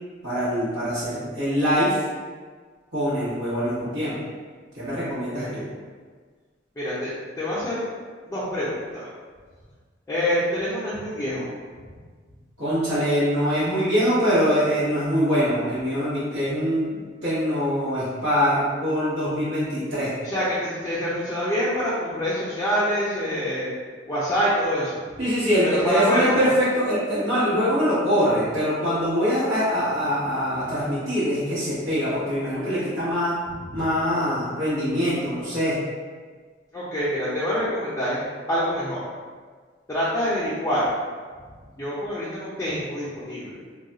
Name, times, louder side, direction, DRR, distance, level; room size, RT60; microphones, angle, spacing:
voice 1, 0.2-2.0 2.9-4.2 4.7-5.6 12.6-20.1 25.2-33.4 33.7-35.8, equal, 80° right, -13 dB, 1.0 m, -23 dB
voice 2, 5.3-5.7 6.8-7.8 8.2-9.1 10.1-11.5 20.2-23.7 24.1-25.1 25.6-26.5 33.7-33.8 36.7-38.2 38.5-39.0 39.9-40.9 41.7-43.6, equal, 15° left, -10 dB, 0.5 m, -26 dB
2.3 x 2.2 x 3.8 m, 1.5 s
head